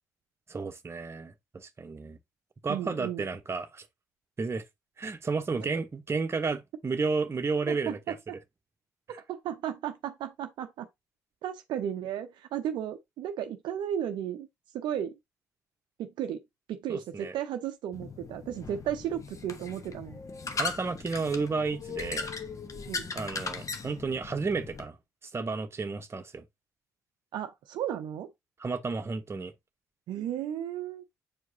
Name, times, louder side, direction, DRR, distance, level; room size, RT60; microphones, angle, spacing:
voice 1, 0.5-2.2 2.6-3.9 4.4-4.6 5.0-8.2 16.9-17.3 20.5-22.3 23.1-25.0 25.3-26.4 28.6-29.5, right 4 dB, 30° right, 1.0 m, -32 dB
voice 2, 2.7-3.3 5.6-5.7 7.7-8.2 9.3-10.9 11.4-14.5 14.7-15.1 16.0-16.4 16.7-20.2 22.9-23.1 27.3-28.3 30.1-31.0, right 10 dB, 60° right, 0.6 m, -34 dB
sound 1, 17.9-24.8, left 4 dB, 40° left, 1.1 m, -38 dB
7.6 x 4.6 x 2.7 m
figure-of-eight pair, 45°, 9 cm